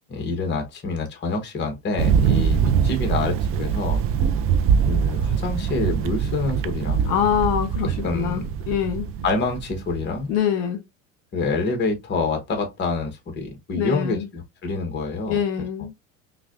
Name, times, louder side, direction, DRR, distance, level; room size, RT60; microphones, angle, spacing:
voice 1, 0.1-4.0 4.9-7.1 8.0-8.5 9.2-10.3 11.3-15.4, left 3 dB, 25° left, 1.1 m, -27 dB
Thunder, 2.0-10.2, right 7 dB, 35° right, 0.4 m, -23 dB
voice 2, 7.0-9.1 10.3-10.8 13.7-14.3 15.3-15.9, left 9 dB, 60° left, 1.2 m, -24 dB
5.7 x 2.3 x 2.5 m
hypercardioid pair, 100°, 40 cm